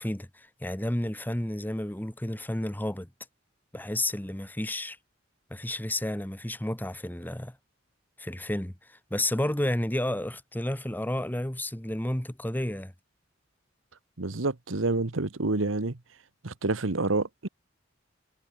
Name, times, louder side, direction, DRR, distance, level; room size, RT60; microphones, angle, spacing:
voice 1, 0.0-3.1 3.7-5.0 5.5-7.6 8.2-12.9, left 1 dB, 10° left, 1.4 m, -31 dB
voice 2, 14.2-16.0 16.4-17.5, right 2 dB, 90° right, 1.3 m, -28 dB
head